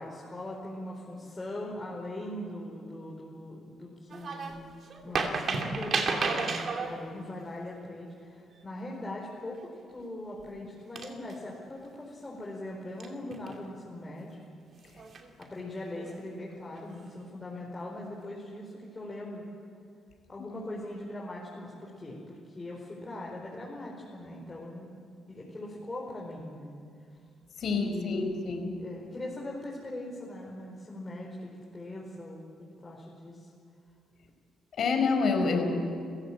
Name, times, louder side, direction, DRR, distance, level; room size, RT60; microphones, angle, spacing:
voice 1, 0.0-4.5 5.0-9.6 9.9-14.4 15.4-19.5 20.3-24.9 25.3-26.7 27.7-28.4 28.8-33.5, left 1 dB, 25° left, -3 dB, 4.8 m, -40 dB
sound 1, 4.1-4.6 4.9-6.9 9.6-9.8 10.4-10.5 11.0-11.6 13.0-13.7 14.8-15.4 15.9-16.1, right 4 dB, 50° right, 2.9 m, -32 dB
voice 2, 27.6-28.8 34.8-35.7, left 4 dB, 60° left, 5 dB, 4.9 m, -27 dB
30.0 x 15.5 x 8.7 m, 2.3 s
cardioid pair, 90°, 0 cm